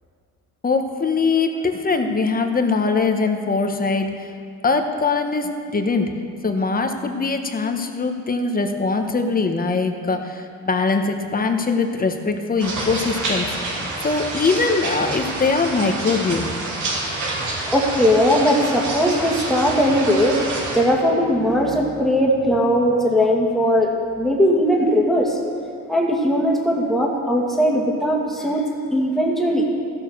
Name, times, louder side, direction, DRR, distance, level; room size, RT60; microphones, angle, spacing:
voice 1, 0.6-4.3 4.6-6.1 6.4-16.5, left 4 dB, 30° left, 5 dB, 1.2 m, -22 dB
sound 1, 12.6-20.8, right 2 dB, 80° right, 2.7 m, -28 dB
voice 2, 17.7-20.4 20.7-25.4 25.9-28.6 28.9-29.6, equal, ahead, -2 dB, 2.2 m, -19 dB
14.5 x 6.7 x 6.6 m, 2.5 s
cardioid pair, 90°, 30 cm